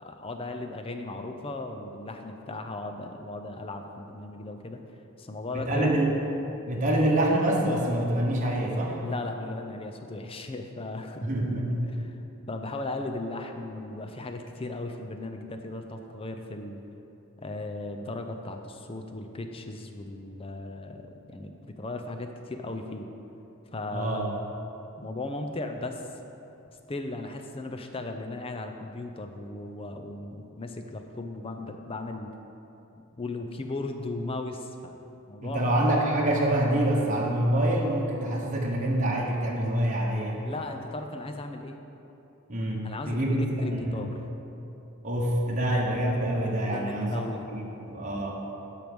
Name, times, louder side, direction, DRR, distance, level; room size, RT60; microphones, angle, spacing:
voice 1, 0.0-4.8 5.2-6.0 9.0-11.3 11.8-12.2 12.5-16.8 17.4-23.1 23.7-24.5 25.0-26.0 26.9-32.3 33.1-35.0 35.3-35.8 40.4-41.8 42.8-44.1 46.6-47.5, left 2 dB, 25° left, 5 dB, 0.5 m, -36 dB
voice 2, 5.5-6.2 6.7-9.0 11.2-11.8 23.9-24.2 35.4-40.4 42.5-44.1 45.0-47.1 47.5-48.4, right 1 dB, 35° right, -2 dB, 1.1 m, -26 dB
12.0 x 4.7 x 5.2 m, 3.0 s
head